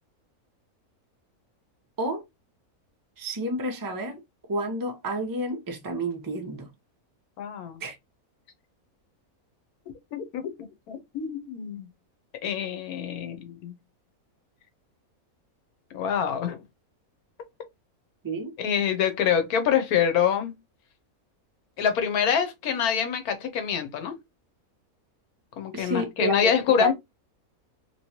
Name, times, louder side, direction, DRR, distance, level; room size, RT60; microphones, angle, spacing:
voice 1, 3.2-4.2 4.5-6.7 7.8-8.0 18.2-18.5 25.7-26.9, right 1 dB, 30° right, 0.3 m, -30 dB
voice 2, 7.4-7.8 10.1-10.4 10.9-11.9 12.4-13.7 15.9-16.6 18.6-20.5 21.8-24.1 25.6-26.9, left 8 dB, 80° left, 1.3 m, -26 dB
3.0 x 3.0 x 2.8 m
omnidirectional pair, 1.6 m